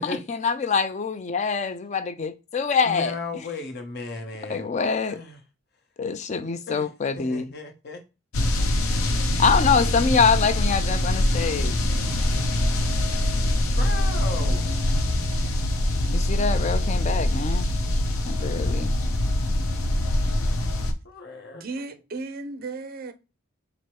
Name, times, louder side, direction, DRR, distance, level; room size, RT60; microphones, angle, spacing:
voice 1, 0.0-3.1 4.5-5.2 6.0-7.5 9.4-11.7 16.1-17.7 18.3-18.9, left 5 dB, 35° left, 0.4 m, -24 dB
voice 2, 2.8-4.7 5.1-5.4 6.7-6.9 7.2-8.0 13.6-14.8 21.0-21.6, left 3 dB, 50° left, 0.8 m, -35 dB
sound 1, 8.3-20.9, left 1 dB, 75° left, 0.6 m, -23 dB
voice 3, 21.5-23.1, right 3 dB, 45° right, 0.4 m, -35 dB
4.6 x 2.0 x 4.5 m
head